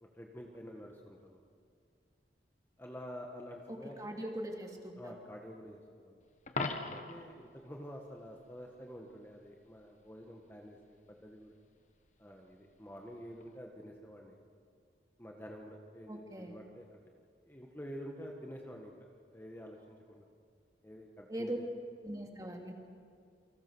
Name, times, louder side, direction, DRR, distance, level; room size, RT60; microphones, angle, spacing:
voice 1, 0.0-1.4 2.8-4.2 5.0-6.2 6.9-11.5 12.2-14.4 15.2-17.0 17.4-18.9 19.3-20.3 20.8-21.6, equal, 10° left, 0 dB, 1.7 m, -49 dB
voice 2, 3.7-5.1 16.1-16.5 21.3-21.6 22.0-22.7, right 1 dB, 20° right, 2 dB, 2.6 m, -41 dB
Coin (dropping), 6.5-7.3 13.4-13.6, left 3 dB, 40° left, 1.5 m, -37 dB
29.0 x 26.0 x 6.3 m, 2.3 s
head